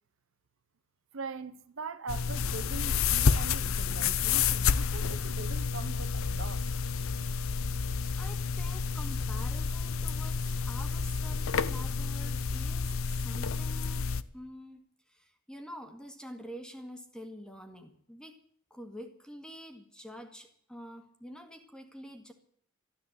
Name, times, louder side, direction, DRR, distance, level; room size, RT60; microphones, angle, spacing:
voice 1, 1.1-6.8, right 4 dB, 65° right, 0.8 m, -42 dB
sound 1, 2.1-14.2, left 5 dB, 70° left, 0.6 m, -30 dB
voice 2, 8.1-14.1 14.3-18.4 18.7-22.3, equal, 5° left, 1.8 m, -47 dB
13.0 x 12.5 x 8.2 m
head